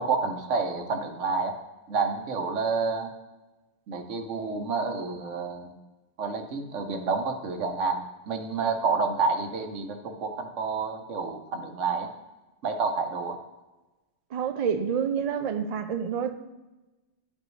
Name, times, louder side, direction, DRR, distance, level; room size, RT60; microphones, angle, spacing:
voice 1, 0.0-1.6 1.9-3.1 3.9-5.7 6.2-12.1 12.6-13.4, right 4 dB, 85° right, 1.2 m, -29 dB
voice 2, 14.3-16.3, right 7 dB, 55° right, 0.4 m, -28 dB
11.5 x 5.4 x 3.1 m
omnidirectional pair, 1.2 m